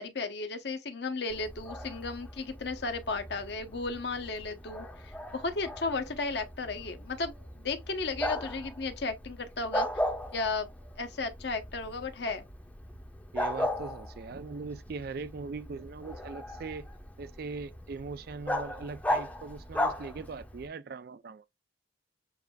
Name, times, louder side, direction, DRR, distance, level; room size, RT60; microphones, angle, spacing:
voice 1, 0.0-9.9 10.3-10.7 11.0-12.4, left 3 dB, 55° left, 0.8 m, -34 dB
Bark, 1.3-20.7, left 1 dB, 5° left, 0.7 m, -37 dB
voice 2, 13.3-16.9 17.2-21.4, right 4 dB, 50° right, 0.3 m, -40 dB
7.1 x 2.6 x 2.2 m
head